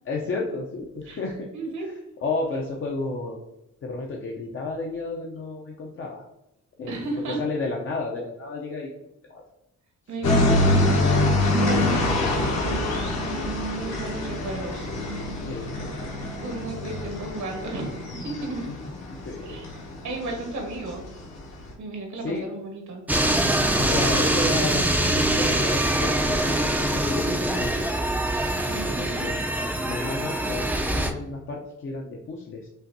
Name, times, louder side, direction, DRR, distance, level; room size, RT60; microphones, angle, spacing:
voice 1, 0.1-1.5 1.8-3.4 3.8-6.2 6.8-7.1 7.4-8.9 9.3-9.4 11.7-12.1 15.5-16.0 18.7-19.9 22.2-22.5 23.8-26.6 26.9-27.7 28.7-29.4 29.8-32.7, left 3 dB, 45° left, -1 dB, 0.6 m, -32 dB
voice 2, 1.5-1.9 6.9-7.4 10.1-11.0 11.4-14.9 16.4-18.7 19.4-19.6 20.0-21.0 21.8-23.0 28.7-29.4, right 2 dB, 70° right, 2 dB, 1.3 m, -33 dB
sound 1, 10.2-21.7, left 2 dB, 60° left, 1.1 m, -25 dB
sound 2, 23.1-31.1, right 1 dB, 5° right, 0.4 m, -24 dB
5.5 x 2.5 x 2.6 m, 0.90 s
cardioid pair, 90°, 30 cm